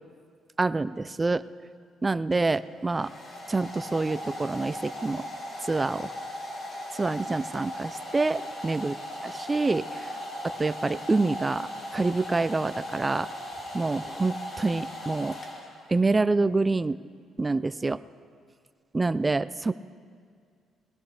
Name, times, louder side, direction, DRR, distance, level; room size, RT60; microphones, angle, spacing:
voice 1, 0.6-1.4 2.0-3.1 3.5-5.2 5.6-6.1 6.9-9.0 9.2-10.1 10.4-13.3 13.7-15.4 15.9-17.0 17.4-18.0 18.9-19.7, right 3 dB, 20° right, 14 dB, 0.4 m, -27 dB
Domestic sounds home sounds, 2.3-16.0, left 1 dB, 40° left, 2.4 m, -38 dB
21.5 x 17.5 x 3.4 m, 2.2 s
cardioid pair, 105°, 0 cm